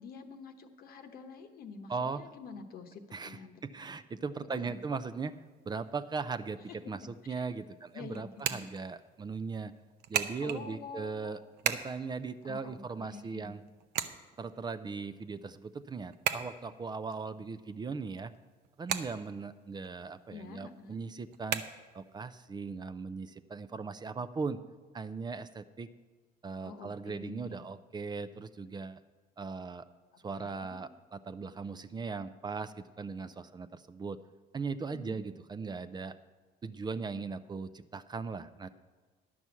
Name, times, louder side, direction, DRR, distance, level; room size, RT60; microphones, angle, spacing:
voice 1, 0.0-3.6 4.5-4.8 7.3-7.4 7.9-8.7 10.4-11.4 12.4-13.6 20.3-21.0 26.6-27.6 30.4-30.8 34.9-35.2, left 5 dB, 65° left, 6 dB, 1.0 m, -47 dB
voice 2, 1.9-2.2 3.1-5.3 5.7-9.7 10.1-13.6 14.4-18.3 18.8-21.6 21.9-24.6 24.9-25.9 26.4-29.0 29.4-29.9 30.2-34.2 34.5-36.1 36.6-38.7, right 4 dB, 25° right, 11 dB, 0.5 m, -39 dB
sound 1, 4.7-22.3, right 9 dB, 75° right, 0.7 m, -41 dB
11.0 x 6.0 x 8.2 m, 1.4 s
cardioid pair, 110°, 17 cm